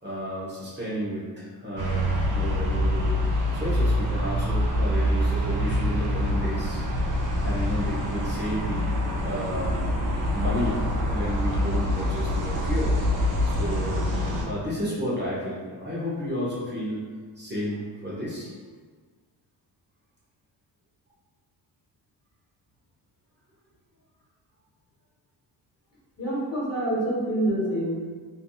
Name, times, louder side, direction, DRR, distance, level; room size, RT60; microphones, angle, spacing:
voice 1, 0.0-3.2 3.6-6.8 7.4-8.9 9.2-9.8 10.3-10.8 11.1-13.0 13.4-14.1 14.4-17.0 17.4-18.5, equal, 25° right, -8 dB, 1.0 m, -32 dB
sound 1, 1.8-14.5, left 1 dB, 45° right, 0.6 m, -25 dB
voice 2, 26.2-27.9, right 1 dB, 35° left, -7 dB, 1.2 m, -26 dB
3.3 x 2.7 x 2.4 m, 1.5 s
cardioid pair, 95°, 45 cm